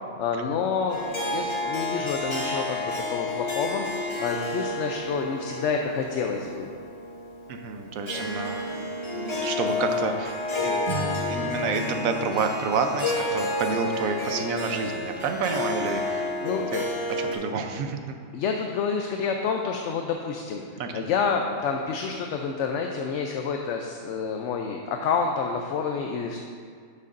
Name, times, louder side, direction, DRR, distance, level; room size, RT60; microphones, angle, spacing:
voice 1, 0.2-6.7 16.4-16.7 18.3-20.6 20.9-26.4, left 5 dB, 70° left, 3 dB, 0.8 m, -28 dB
Harp, 0.9-17.3, left 2 dB, 25° left, 0.9 m, -30 dB
voice 2, 7.5-8.7 9.1-10.7 11.3-16.3 16.7-18.0 20.8-21.1, right 5 dB, 85° right, 5 dB, 1.1 m, -29 dB
Acoustic guitar / Strum, 10.9-14.1, right 1 dB, 40° right, 0.8 m, -36 dB
12.0 x 6.6 x 2.5 m, 2.1 s
omnidirectional pair, 1.4 m